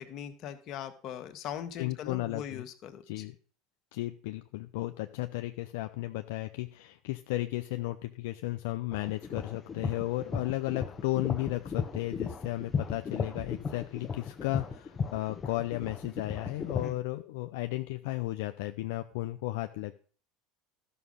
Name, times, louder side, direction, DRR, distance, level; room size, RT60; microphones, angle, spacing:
voice 1, 0.0-3.3 16.7-17.0, left 9 dB, 50° left, 7 dB, 1.5 m, -40 dB
voice 2, 1.8-2.6 3.1-3.3 3.9-19.9, left 17 dB, 75° left, 7 dB, 0.6 m, -34 dB
sound 1, 8.9-16.9, left 5 dB, 30° left, 1.1 m, -36 dB
13.0 x 6.4 x 5.5 m, 0.42 s
hypercardioid pair, 85°, 0 cm